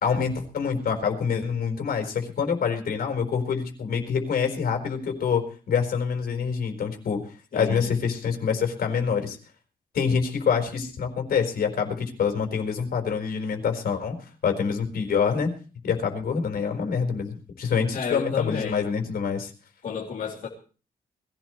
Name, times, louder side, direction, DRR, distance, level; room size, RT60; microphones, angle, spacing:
voice 1, 0.0-9.4 9.9-15.5 15.8-19.5, left 6 dB, 80° left, 4 dB, 4.6 m, -26 dB
voice 2, 7.5-7.9 8.5-8.6 17.9-18.8 19.8-20.5, left 6 dB, 60° left, -3 dB, 3.1 m, -31 dB
21.0 x 16.5 x 3.2 m, 0.38 s
wide cardioid pair, 135°, 15 cm